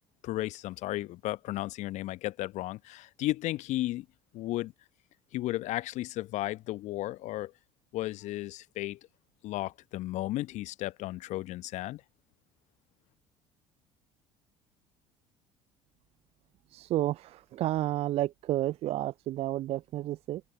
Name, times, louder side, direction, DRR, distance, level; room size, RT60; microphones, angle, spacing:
voice 1, 0.2-4.1 4.3-4.7 5.3-7.5 7.9-9.0 9.4-12.0, left 16 dB, 55° left, 0.9 m, -34 dB
voice 2, 16.7-20.4, right 14 dB, 45° right, 0.4 m, -31 dB
open air
figure-of-eight pair, 60°, 15 cm